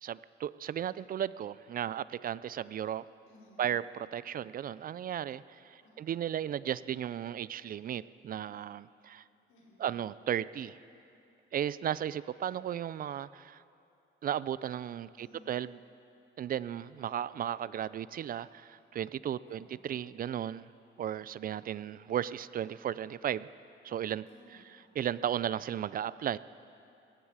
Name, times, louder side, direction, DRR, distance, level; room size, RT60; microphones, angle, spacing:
voice 1, 0.0-3.0 3.6-9.2 9.8-10.8 11.5-13.6 14.2-15.8 16.4-20.7 21.0-23.5 23.8-24.3 25.0-26.4, right 10 dB, 45° right, 18 dB, 0.4 m, -35 dB
voice 2, 3.2-3.7 5.8-6.2 9.5-9.9 15.1-15.5 19.4-19.9 24.3-24.9, left 2 dB, 90° left, -5 dB, 4.5 m, -60 dB
sound 1, 16.8-17.5, left 3 dB, 60° left, 2.5 m, -64 dB
17.0 x 15.0 x 4.9 m, 2.7 s
cardioid pair, 90°, 20 cm